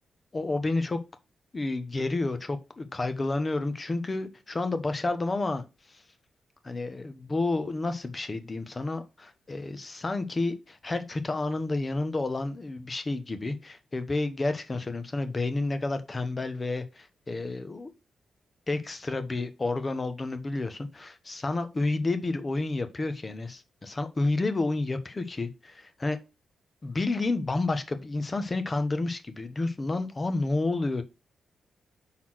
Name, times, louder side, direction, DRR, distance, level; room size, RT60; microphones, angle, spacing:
voice 1, 0.3-1.0 1.5-5.6 6.6-17.9 18.7-26.2 26.8-31.0, left 2 dB, 25° left, 1.1 m, -30 dB
5.8 x 4.3 x 6.3 m
cardioid pair, 115°, 0 cm